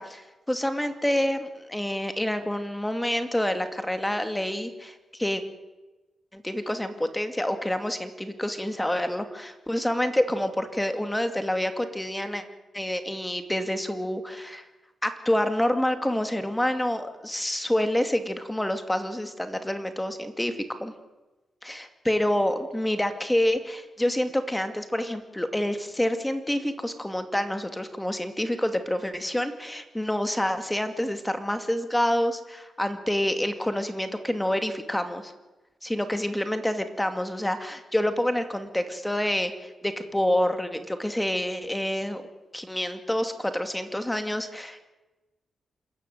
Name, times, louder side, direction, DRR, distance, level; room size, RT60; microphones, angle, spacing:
voice 1, 0.0-5.4 6.3-12.4 12.7-14.6 15.0-20.9 21.6-35.3 35.8-42.2 42.5-44.8, left 1 dB, 10° left, 8 dB, 2.4 m, -27 dB
26.5 x 14.5 x 9.5 m, 1.1 s
cardioid pair, 85°, 0 cm